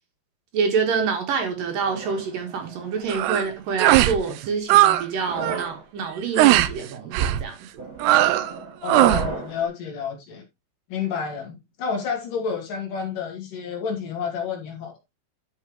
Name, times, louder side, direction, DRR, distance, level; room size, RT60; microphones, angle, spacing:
voice 1, 0.5-7.9, right 5 dB, 65° right, 2.9 m, -27 dB
sound 1, 1.7-3.2 3.9-4.3 5.1-5.8 6.5-6.8 7.8-9.6, right 3 dB, 35° right, 2.7 m, -35 dB
sound 2, 3.1-3.5 3.8-4.2 4.4-5.0 5.3-5.6 6.4-6.7 7.1-7.4 8.0-8.5 8.9-9.3, right 14 dB, 85° right, 2.8 m, -18 dB
voice 2, 8.8-10.4 10.9-14.9, left 6 dB, 60° left, 3.5 m, -30 dB
12.5 x 5.5 x 3.1 m
omnidirectional pair, 4.7 m